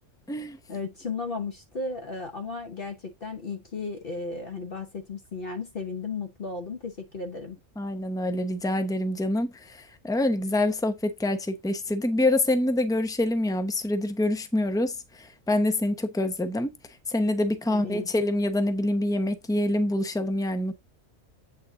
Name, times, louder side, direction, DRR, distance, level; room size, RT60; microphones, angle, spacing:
voice 1, 0.7-7.6 17.7-18.1, left 4 dB, 50° left, 1.1 m, -35 dB
voice 2, 7.8-16.7 17.1-20.7, left 1 dB, 5° left, 0.5 m, -26 dB
8.3 x 4.0 x 3.7 m
omnidirectional pair, 1.3 m